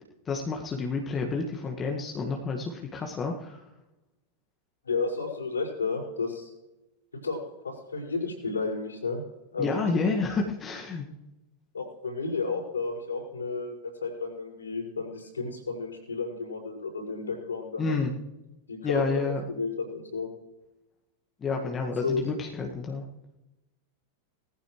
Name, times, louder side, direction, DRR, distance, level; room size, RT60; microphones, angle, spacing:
voice 1, 0.3-3.6 9.6-11.1 17.8-18.1 18.8-19.4 21.4-23.0, left 4 dB, 20° left, 1 dB, 1.7 m, -29 dB
voice 2, 4.8-6.5 7.1-9.2 9.5-10.2 11.7-13.8 14.0-18.0 18.7-20.3 21.6-21.7 22.0-22.3, left 4 dB, 75° left, -2 dB, 5.3 m, -32 dB
19.5 x 14.5 x 3.2 m, 0.97 s
figure-of-eight pair, 90°, 0 cm